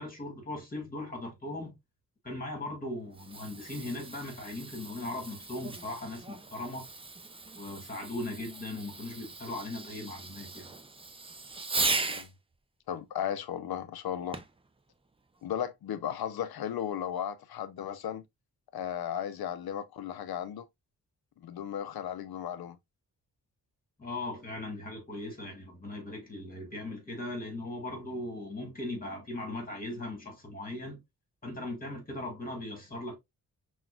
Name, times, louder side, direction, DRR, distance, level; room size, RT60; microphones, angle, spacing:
voice 1, 0.0-1.7 2.2-6.9 7.6-10.7 24.0-31.0 31.4-33.2, left 2 dB, 25° left, 1.8 m, -38 dB
Fireworks, 3.0-12.3 14.3-14.7 15.4-15.5, right 3 dB, 15° right, 0.4 m, -38 dB
voice 2, 12.9-14.4 15.4-18.2 18.7-20.7 21.4-22.8, left 9 dB, 90° left, 0.6 m, -35 dB
5.8 x 2.4 x 2.2 m
wide cardioid pair, 125°, 36 cm